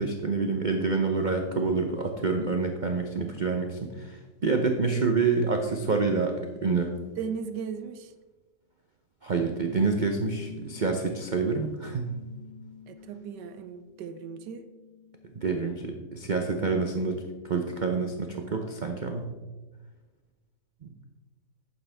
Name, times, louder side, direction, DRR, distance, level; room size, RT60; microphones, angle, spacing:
voice 1, 0.0-6.9 9.2-12.1 15.4-19.3 20.8-20.9, right 4 dB, 45° right, 4 dB, 0.6 m, -27 dB
voice 2, 7.2-8.1 12.9-14.7, right 6 dB, 80° right, 11 dB, 1.3 m, -37 dB
sound 1, 9.4-15.4 15.9-17.2, left 8 dB, 65° left, 2.7 m, -49 dB
11.5 x 8.8 x 3.4 m, 1.2 s
omnidirectional pair, 1.9 m